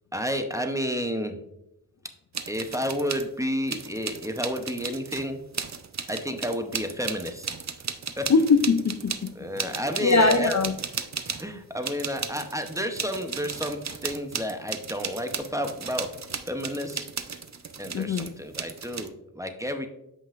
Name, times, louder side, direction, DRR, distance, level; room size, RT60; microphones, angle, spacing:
voice 1, 0.1-1.4 2.5-5.4 6.1-7.6 8.2-8.3 9.4-10.6 11.4-16.1 16.5-17.1 17.8-19.9, equal, 10° right, 0.7 m, -31 dB
sound 1, 2.3-3.3 3.7-11.5 11.8-19.1, right 6 dB, 45° right, 0.5 m, -35 dB
voice 2, 8.3-9.3 10.0-10.7 17.9-18.3, left 4 dB, 45° left, 0.4 m, -21 dB
7.9 x 5.4 x 2.5 m
wide cardioid pair, 50°, 38 cm